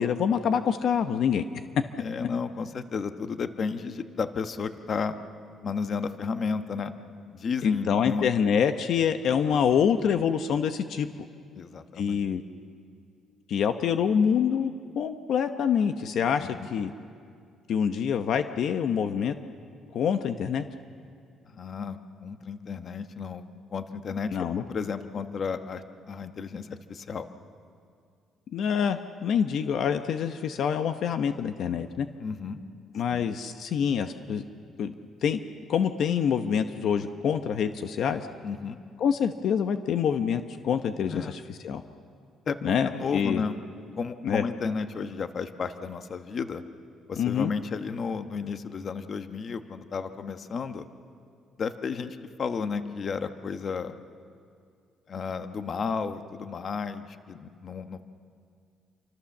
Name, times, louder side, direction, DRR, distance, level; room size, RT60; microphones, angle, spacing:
voice 1, 0.0-1.4 7.6-11.1 12.0-12.4 13.5-16.9 17.7-19.3 19.9-20.6 24.3-24.6 28.5-32.1 32.9-34.4 34.8-34.9 35.2-35.4 35.7-38.2 39.0-41.8 42.6-43.4 44.2-44.4 47.2-47.5, left 7 dB, 60° left, 8 dB, 0.9 m, -26 dB
voice 2, 2.0-5.1 5.6-6.9 7.3-8.2 11.5-12.2 16.4-16.7 21.4-27.3 32.2-32.6 33.1-33.2 38.4-38.8 41.1-41.3 42.5-42.6 42.8-43.6 44.0-46.6 47.1-50.8 51.6-53.9 55.1-58.0, left 5 dB, 40° left, 9 dB, 1.1 m, -33 dB
27.5 x 25.0 x 7.3 m, 2.3 s
cardioid pair, 145°, 0 cm